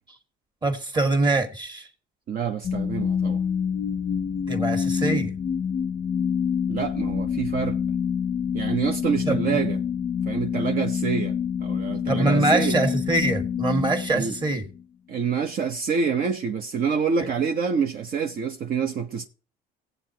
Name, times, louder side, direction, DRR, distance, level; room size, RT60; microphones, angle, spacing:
voice 1, 0.6-1.9 4.5-5.3 9.2-9.6 12.1-14.7, right 2 dB, 25° right, 1.8 m, -24 dB
voice 2, 2.3-3.4 6.7-7.8 8.5-9.8 10.3-11.3 11.6-12.8 14.1-14.3 15.1-19.3, right 6 dB, 60° right, 0.9 m, -27 dB
sound 1, 2.6-14.8, left 7 dB, 40° left, 0.5 m, -27 dB
18.5 x 8.1 x 2.8 m
cardioid pair, 110°, 17 cm